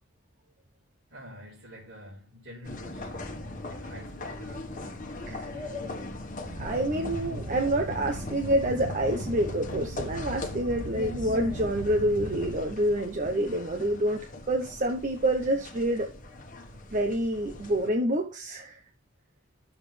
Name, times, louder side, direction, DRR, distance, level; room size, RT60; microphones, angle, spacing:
voice 1, 1.1-5.2 5.5-6.1, equal, 90° right, 3.9 m, -49 dB
sound 1, 2.6-17.9, left 2 dB, 45° left, 1.4 m, -40 dB
sound 2, 6.5-12.5, right 1 dB, 60° right, 2.6 m, -38 dB
voice 2, 6.6-14.2 14.5-16.1 16.9-18.8, right 1 dB, 40° right, 0.9 m, -27 dB
11.0 x 7.2 x 3.4 m
head